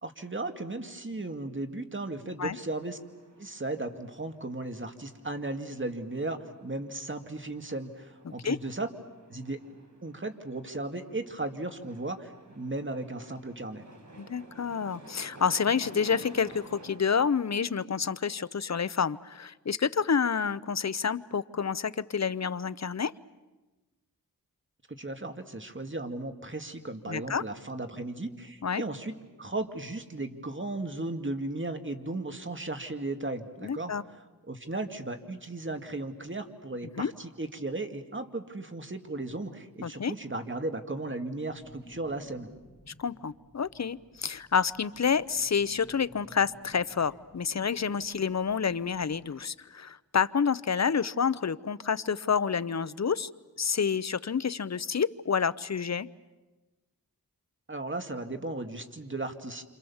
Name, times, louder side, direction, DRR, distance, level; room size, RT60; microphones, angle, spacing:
voice 1, 0.0-3.0 3.4-8.9 9.3-9.6 10.0-13.8 24.9-29.1 29.4-34.2 34.5-42.5 57.7-59.6, right 2 dB, 30° right, 6 dB, 2.3 m, -36 dB
sound 1, 2.7-17.0, right 1 dB, 50° right, 5.4 m, -52 dB
voice 2, 14.2-23.1 27.1-27.4 28.6-28.8 33.6-34.0 37.0-37.1 39.8-40.1 43.0-53.3 53.6-56.1, left 6 dB, 45° left, 16 dB, 0.8 m, -29 dB
sound 2, 41.5-49.3, equal, 15° left, 6.6 m, -56 dB
28.0 x 27.0 x 7.2 m, 1.2 s
wide cardioid pair, 55°, 37 cm